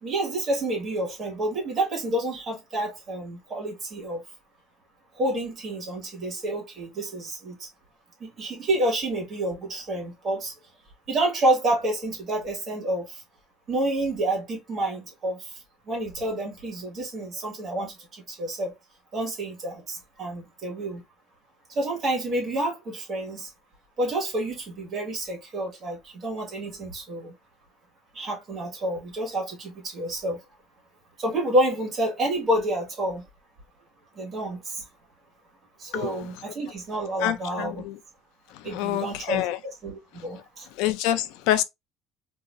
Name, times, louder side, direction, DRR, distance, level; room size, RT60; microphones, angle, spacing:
voice 1, 0.0-4.2 5.2-7.7 8.2-10.5 11.1-13.2 13.7-15.4 15.9-18.7 19.1-21.0 21.7-23.5 24.0-27.3 28.1-30.4 31.2-33.2 34.2-34.8 35.8-37.8 38.6-40.6, right 1 dB, 25° right, 1.7 m, -29 dB
voice 2, 37.2-38.0 38.5-39.6 40.8-41.6, left 13 dB, 80° left, 0.4 m, -26 dB
3.9 x 2.7 x 2.5 m
cardioid pair, 180°, 0 cm